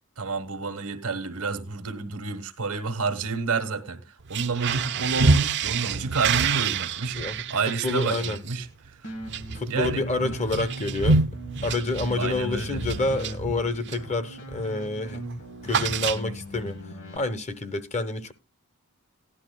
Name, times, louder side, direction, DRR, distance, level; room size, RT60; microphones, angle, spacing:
voice 1, 0.2-4.0 4.3-7.2 7.5-8.7 9.7-10.3 12.2-12.8, right 4 dB, 80° right, 1.3 m, -29 dB
Rusty Screen Door, 4.2-14.1 14.5-14.8 15.0-16.6, right 4 dB, 55° right, 0.7 m, -28 dB
voice 2, 7.1-8.4 9.5-11.2 11.6-16.8 17.1-18.3, left 2 dB, 30° left, 0.8 m, -28 dB
sound 1, 9.0-17.2, equal, 55° left, 2.0 m, -39 dB
16.5 x 11.0 x 2.2 m
head